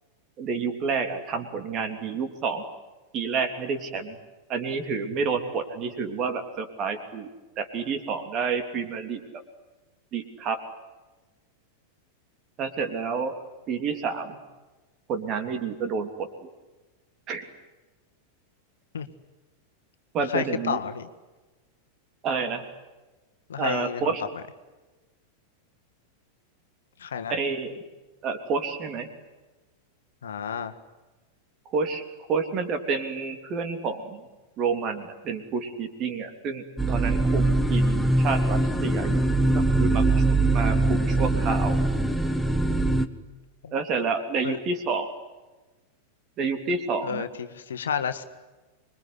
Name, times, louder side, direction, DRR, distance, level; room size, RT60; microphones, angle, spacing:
voice 1, 0.4-2.6 3.1-4.2 4.5-7.3 7.6-9.2 10.1-10.6 12.6-13.3 13.7-14.4 15.1-16.5 17.3-17.4 20.1-20.8 22.2-22.6 23.6-24.2 27.3-27.8 28.2-29.1 31.6-32.0 32.3-34.2 34.6-39.3 39.5-41.8 43.7-45.1 46.4-47.3, right 5 dB, 35° right, 7 dB, 3.3 m, -29 dB
voice 2, 20.3-21.1 23.5-24.1 27.0-27.3 30.2-30.7 43.6-43.7 44.4-44.6 47.0-48.2, left 7 dB, 65° left, 9 dB, 1.6 m, -31 dB
sound 1, 36.8-43.1, right 2 dB, ahead, 1.5 m, -22 dB
26.0 x 22.0 x 9.8 m, 1.2 s
figure-of-eight pair, 90°, 0 cm